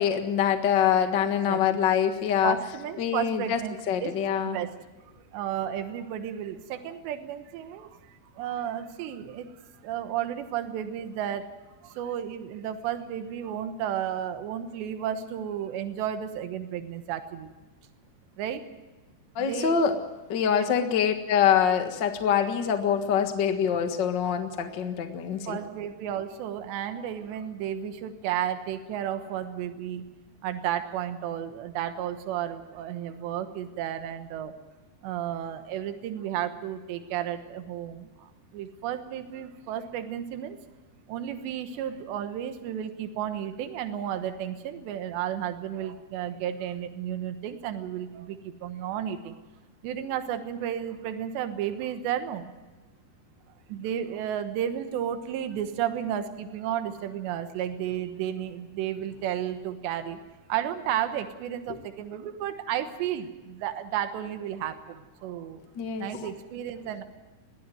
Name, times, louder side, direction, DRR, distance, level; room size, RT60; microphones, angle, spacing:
voice 1, 0.0-2.5 3.0-3.6 3.9-4.6 19.3-19.9 20.3-25.6 65.8-66.1, left 8 dB, 70° left, 6 dB, 1.0 m, -24 dB
voice 2, 1.5-1.8 2.4-3.8 4.0-4.1 4.5-4.7 5.3-7.9 8.4-9.5 9.9-11.5 12.0-17.5 18.4-18.6 19.4-19.8 20.6-20.7 25.5-30.0 30.4-34.5 35.0-38.0 38.5-40.6 41.1-48.3 48.6-49.3 49.8-52.5 53.7-60.2 60.5-63.3 63.6-64.7 65.2-65.6 66.0-67.0, right 10 dB, 85° right, 8 dB, 3.5 m, -32 dB
21.0 x 15.5 x 9.2 m, 1.2 s
omnidirectional pair, 4.9 m